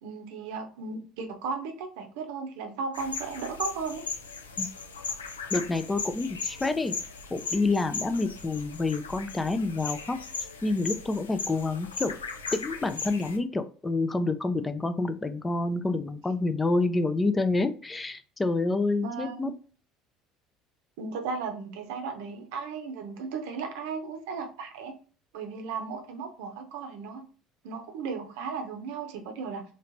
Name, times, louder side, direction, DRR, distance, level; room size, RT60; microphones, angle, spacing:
voice 1, 0.0-4.1 8.1-8.2 19.0-19.5 21.0-24.9 25.3-27.2 27.6-29.6, right 5 dB, 70° right, 5 dB, 0.6 m, -35 dB
sound 1, 2.9-13.4, left 5 dB, 90° left, 0.4 m, -37 dB
voice 2, 5.5-7.0 7.3-10.2 10.6-12.1 12.5-19.5, left 3 dB, 20° left, 10 dB, 0.4 m, -28 dB
3.1 x 2.9 x 2.6 m, 0.39 s
hypercardioid pair, 65°, 0 cm